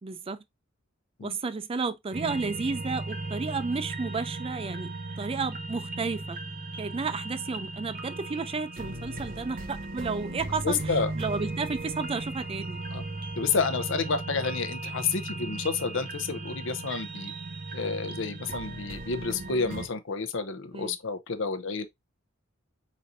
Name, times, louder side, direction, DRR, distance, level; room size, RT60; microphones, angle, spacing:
voice 1, 0.0-0.4 1.2-4.9 5.2-6.4 6.8-12.8 20.7-21.0, right 4 dB, 30° right, 0.4 m, -32 dB
sound 1, 2.1-19.9, right 2 dB, 45° right, 1.0 m, -37 dB
voice 2, 10.6-11.1 12.9-13.0 13.4-17.3 17.7-21.9, left 4 dB, 70° left, 0.7 m, -30 dB
4.3 x 4.1 x 2.6 m
head